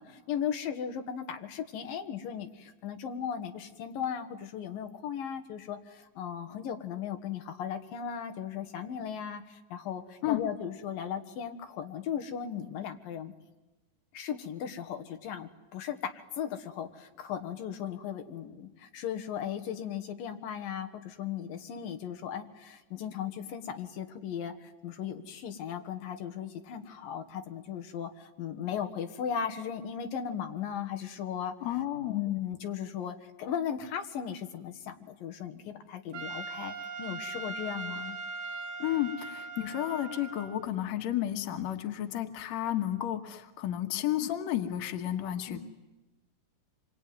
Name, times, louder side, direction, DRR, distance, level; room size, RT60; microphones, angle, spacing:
voice 1, 0.0-13.3 14.1-31.5 32.1-38.2 45.5-45.6, left 8 dB, 90° left, 6 dB, 3.3 m, -37 dB
voice 2, 31.6-32.3 38.8-45.6, left 12 dB, 60° left, 7 dB, 2.5 m, -32 dB
Trumpet, 36.1-40.7, right 3 dB, 65° right, 2.6 m, -40 dB
26.5 x 23.5 x 9.4 m, 1.1 s
omnidirectional pair, 3.9 m